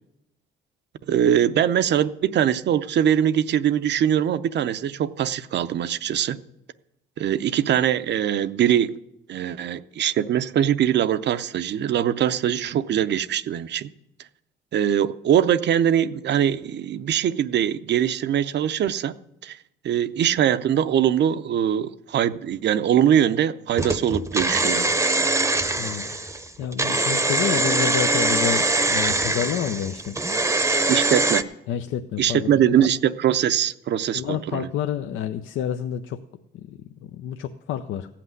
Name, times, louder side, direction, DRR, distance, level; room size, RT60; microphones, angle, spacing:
voice 1, 1.1-6.4 7.2-9.0 9.3-13.9 14.7-19.1 19.4-19.6 19.8-24.9 30.9-31.5 32.2-34.7, right 10 dB, 60° right, 0.6 m, -22 dB
sound 1, 23.8-31.4, right 2 dB, 15° right, 0.7 m, -23 dB
voice 2, 25.8-30.2 31.7-32.9 34.1-36.2 36.5-38.1, left 10 dB, 85° left, 0.6 m, -29 dB
15.0 x 5.9 x 9.5 m
cardioid pair, 90°, 20 cm